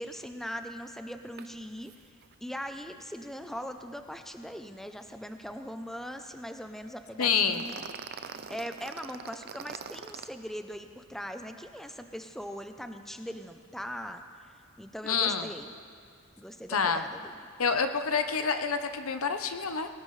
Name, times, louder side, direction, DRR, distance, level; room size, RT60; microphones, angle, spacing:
voice 1, 0.0-1.9 2.4-15.7 16.4-17.3, equal, ahead, 6 dB, 0.6 m, -40 dB
sound 1, 1.4-1.5 1.8-2.0 2.2-2.3 7.2-10.3, right 6 dB, 50° right, 0.6 m, -42 dB
voice 2, 7.2-7.6 15.1-15.5 16.7-17.0 17.6-19.9, left 6 dB, 80° left, 8 dB, 0.9 m, -27 dB
23.0 x 18.0 x 3.3 m, 2.2 s
head